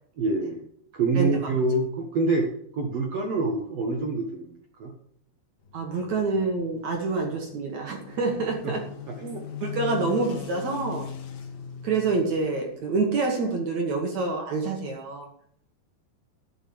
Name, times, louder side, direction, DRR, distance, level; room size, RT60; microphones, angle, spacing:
voice 1, 0.2-0.6 0.9-4.5 4.8-4.9 8.6-8.7 9.2-9.5, right 3 dB, 75° right, 2 dB, 1.5 m, -26 dB
sound 1, 5.6-13.3, left 6 dB, 60° left, 3.0 m, -40 dB
voice 2, 5.7-8.9 9.6-11.1 11.8-15.3, right 3 dB, 55° right, 1 dB, 2.2 m, -27 dB
12.5 x 6.9 x 7.9 m, 0.66 s
omnidirectional pair, 5.0 m